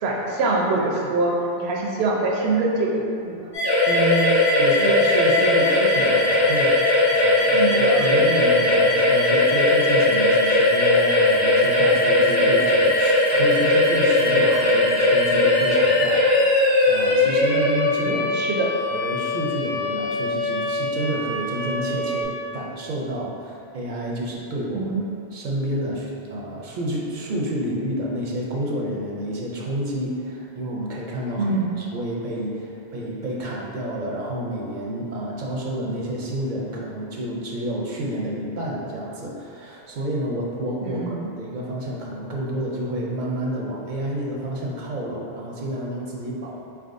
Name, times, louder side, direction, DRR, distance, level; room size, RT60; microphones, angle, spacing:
voice 1, 0.0-3.5 7.5-7.8 18.0-18.7 24.7-25.0 31.4-31.8 40.8-41.3, right 3 dB, 80° right, -2 dB, 0.9 m, -24 dB
sound 1, 3.5-22.2, left 2 dB, 60° left, 1.5 m, -19 dB
voice 2, 3.9-18.3 18.9-25.0 25.3-46.6, right 1 dB, 55° right, -3 dB, 0.6 m, -29 dB
4.2 x 3.5 x 2.5 m, 2.7 s
omnidirectional pair, 1.1 m